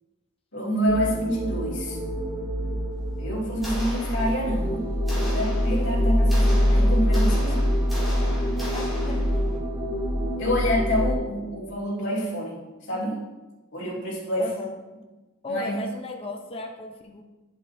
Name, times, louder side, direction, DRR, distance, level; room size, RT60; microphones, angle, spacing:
voice 1, 0.5-2.0 3.2-4.9 5.1-7.8 10.4-12.6 12.9-13.2 13.7-14.5 15.5-15.7, equal, 60° left, -7 dB, 2.6 m, -27 dB
sound 1, 0.9-11.1, equal, 20° right, 1.5 m, -24 dB
sound 2, 3.6-4.7 5.1-9.6, equal, ahead, 2.6 m, -38 dB
voice 2, 8.7-9.2 14.4-14.7 15.4-17.2, left 1 dB, 25° left, 2 dB, 0.8 m, -35 dB
9.7 x 7.8 x 2.7 m, 1.1 s
head